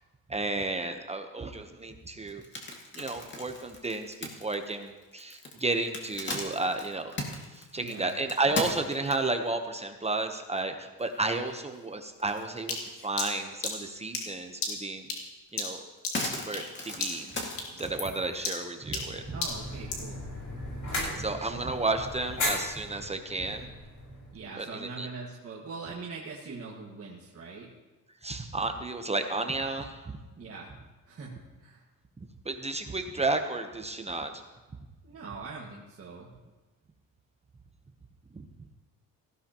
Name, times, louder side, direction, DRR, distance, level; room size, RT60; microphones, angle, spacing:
voice 1, 0.3-2.4 2.9-7.1 7.5-15.1 15.5-15.8 16.2-17.3 17.7-19.4 21.0-23.7 24.6-25.1 28.2-30.2 32.4-34.3 38.3-38.4, right 2 dB, 20° right, 6 dB, 0.9 m, -32 dB
sound 1, 2.3-9.5 10.0-10.1 10.6-10.7 11.0-11.8 12.2-13.1 13.5-13.6 15.0-15.1 15.5-18.0, left 2 dB, 30° left, 2.1 m, -38 dB
voice 2, 7.8-8.2 19.3-20.3 24.3-27.7 30.4-30.7 31.1-31.4 31.6-31.9 35.0-36.3, right 4 dB, 40° right, -3 dB, 1.8 m, -42 dB
sound 2, 12.7-16.7 17.0-17.3 17.6-20.1, left 4 dB, 75° left, 2.5 m, -35 dB
sound 3, 19.0-24.4, left 1 dB, 55° left, 5.8 m, -36 dB
18.0 x 15.0 x 3.0 m, 1.2 s
cardioid pair, 115°, 35 cm